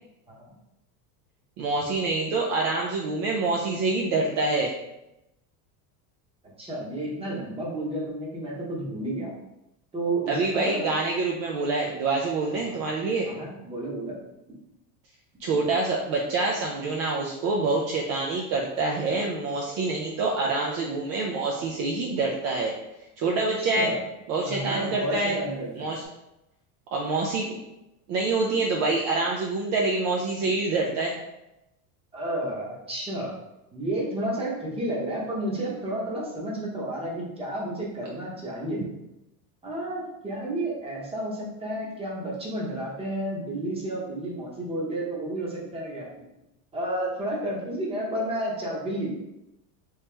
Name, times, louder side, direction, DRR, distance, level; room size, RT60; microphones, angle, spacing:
voice 1, 1.6-4.7 10.3-13.3 15.4-22.7 23.2-23.9 24.3-25.4 25.7-26.0 26.9-27.6 28.1-31.1, right 3 dB, 45° right, -1 dB, 0.5 m, -26 dB
voice 2, 6.6-9.3 9.9-11.0 12.5-12.8 13.2-14.2 23.6-24.0 24.4-25.9 32.1-33.3 33.7-38.8 39.6-46.1 46.7-49.2, right 1 dB, 10° right, -4 dB, 0.8 m, -31 dB
sound 1, 17.9-22.6 25.9-26.0, right 3 dB, 30° left, 0.7 m, -45 dB
3.1 x 2.9 x 3.3 m, 0.92 s
supercardioid pair, 145°, 47 cm